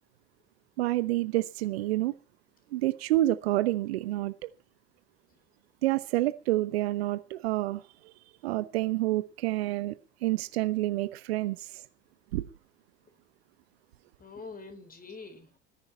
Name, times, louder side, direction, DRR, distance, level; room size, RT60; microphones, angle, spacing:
voice 1, 0.8-2.1 2.7-4.5 5.8-7.8 8.4-10.0 10.2-11.8 12.3-12.4, right 16 dB, 65° right, 15 dB, 0.9 m, -28 dB
voice 2, 14.2-15.6, left 4 dB, 25° left, 8 dB, 4.4 m, -45 dB
18.0 x 10.5 x 5.6 m, 0.34 s
figure-of-eight pair, 70°, 33 cm